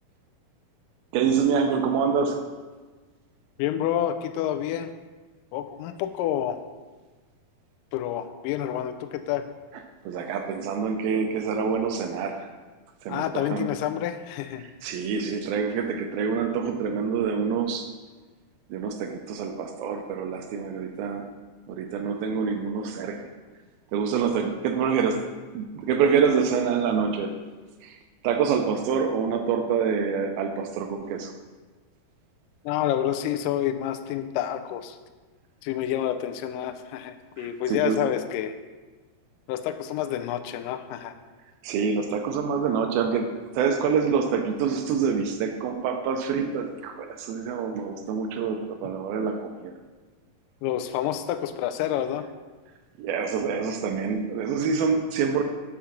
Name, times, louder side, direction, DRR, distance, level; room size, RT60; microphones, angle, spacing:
voice 1, 1.1-2.4 10.1-12.5 13.0-13.7 14.6-17.9 18.7-21.3 21.7-23.2 23.9-25.3 25.5-27.3 27.8-28.0 28.2-31.3 37.4-38.1 41.6-49.7 53.0-55.4, right 6 dB, 80° right, 5 dB, 2.4 m, -26 dB
voice 2, 3.6-4.9 5.5-6.6 7.9-9.5 13.1-14.7 32.7-35.0 35.6-38.5 39.5-41.1 50.6-52.3, left 11 dB, 85° left, 7 dB, 1.9 m, -28 dB
7.1 x 5.0 x 5.8 m, 1.3 s
omnidirectional pair, 4.4 m